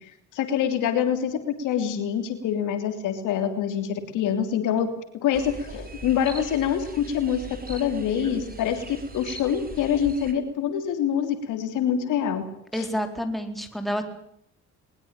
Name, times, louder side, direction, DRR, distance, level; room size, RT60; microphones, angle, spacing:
voice 1, 0.3-4.9 5.2-12.4 12.7-12.9, left 8 dB, 90° left, 7 dB, 3.3 m, -25 dB
sound 1, 5.3-10.3, right 3 dB, 30° right, 4.5 m, -40 dB
voice 2, 12.7-14.1, equal, ahead, 6 dB, 4.1 m, -29 dB
21.0 x 21.0 x 8.9 m, 0.69 s
cardioid pair, 90°, 30 cm